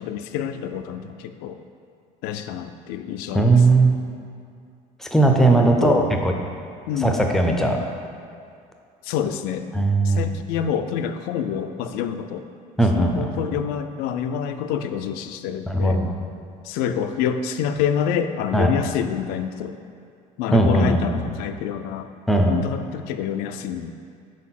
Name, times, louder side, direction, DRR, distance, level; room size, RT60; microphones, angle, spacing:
voice 1, 0.0-1.6 2.2-3.9 5.4-6.1 6.9-7.3 9.0-9.7 10.0-12.5 12.9-16.0 16.6-19.8 20.4-22.1 22.5-23.9, left 8 dB, 85° left, 8 dB, 0.4 m, -27 dB
voice 2, 3.3-3.9 5.0-6.3 7.0-7.8 9.7-10.3 12.8-13.3 15.7-16.1 18.5-18.7 20.5-21.3 22.3-22.5, right 2 dB, 5° left, 2 dB, 0.6 m, -18 dB
4.6 x 4.1 x 5.8 m, 2.3 s
cardioid pair, 115°, 15 cm